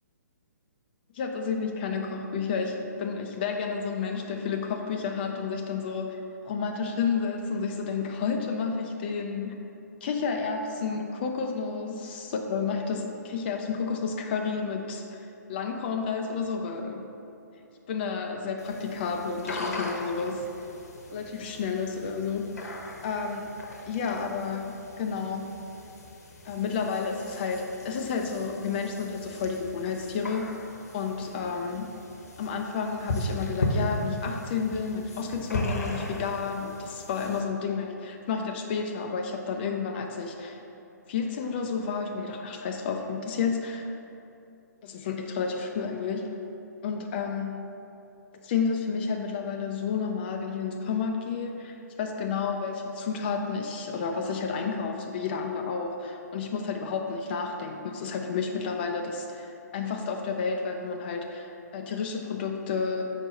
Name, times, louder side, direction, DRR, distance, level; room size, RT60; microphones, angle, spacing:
voice 1, 1.1-9.6 10.0-17.1 17.9-20.4 21.1-22.8 23.0-23.5 23.9-25.5 26.4-30.5 30.9-31.9 32.4-40.6 41.1-43.9 44.8-46.3 46.8-47.6 48.4-63.0, left 5 dB, 35° left, 2 dB, 0.4 m, -31 dB
sound 1, 18.6-37.4, left 1 dB, 60° left, 0.9 m, -37 dB
6.1 x 4.3 x 4.0 m, 2.7 s
figure-of-eight pair, 125°, 10 cm